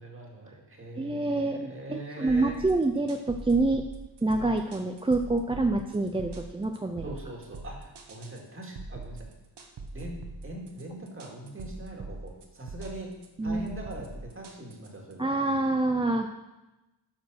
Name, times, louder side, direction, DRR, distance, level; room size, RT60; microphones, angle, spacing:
voice 1, 0.0-2.6 7.0-9.3 9.9-10.2 10.4-13.1 13.4-15.6, right 1 dB, 30° right, -1 dB, 2.2 m, -42 dB
voice 2, 1.0-3.8 4.2-7.0 13.4-13.6 15.2-16.3, right 2 dB, 15° right, 5 dB, 0.4 m, -27 dB
sound 1, 2.3-15.1, right 3 dB, 65° right, 1.3 m, -43 dB
10.0 x 5.2 x 6.3 m, 1.0 s
wide cardioid pair, 135°, 44 cm